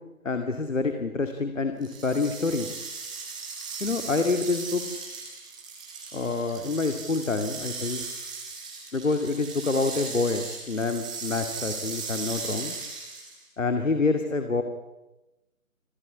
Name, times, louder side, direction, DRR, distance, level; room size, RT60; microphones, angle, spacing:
voice 1, 0.2-2.7 3.8-4.8 6.1-8.0 8.9-12.8 13.6-14.6, left 3 dB, 60° left, 7 dB, 2.5 m, -27 dB
sound 1, 1.8-13.4, right 4 dB, 5° right, 1.2 m, -37 dB
27.5 x 15.0 x 9.8 m, 1.0 s
figure-of-eight pair, 160°, 43 cm